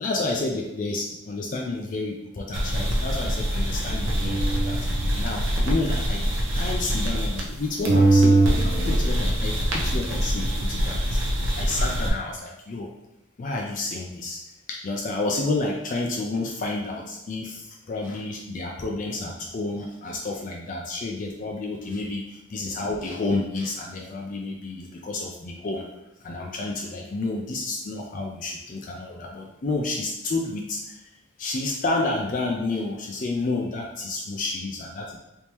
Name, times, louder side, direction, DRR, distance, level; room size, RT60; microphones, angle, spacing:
voice 1, 0.0-4.8 5.2-6.2 6.5-12.9 13.4-14.4 14.7-25.8 26.2-31.0 31.4-35.2, left 2 dB, 40° left, 0 dB, 0.4 m, -30 dB
sound 1, 2.5-7.6 7.8-12.1, right 1 dB, 80° right, 0.7 m, -23 dB
3.5 x 2.7 x 3.0 m, 0.95 s
head